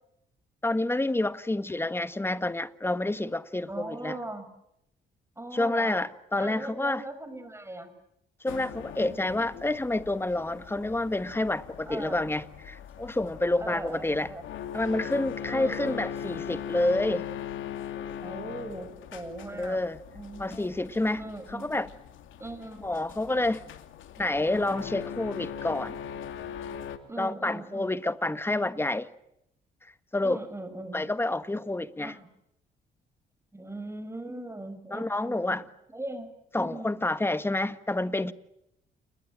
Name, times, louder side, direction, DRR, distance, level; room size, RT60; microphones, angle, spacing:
voice 1, 0.6-4.2 5.5-7.0 8.4-14.3 14.7-17.3 19.6-20.0 20.4-21.2 21.5-21.9 22.8-23.6 24.2-26.0 27.2-29.1 30.1-30.4 30.9-32.1 34.9-35.6 36.5-38.3, left 2 dB, 10° left, 1.6 m, -28 dB
voice 2, 3.7-4.5 5.4-6.1 6.4-7.9 9.0-9.2 9.5-9.6 11.9-12.2 13.6-14.4 15.5-16.0 18.2-19.8 20.1-20.7 21.1-21.7 22.4-22.8 27.0-28.0 30.2-31.0 32.0-32.3 33.5-35.6 35.9-37.1, right 2 dB, 15° right, 5.8 m, -40 dB
sound 1, 8.5-27.0, left 9 dB, 80° left, 2.6 m, -40 dB
29.5 x 21.5 x 8.9 m
cardioid pair, 90°, 20 cm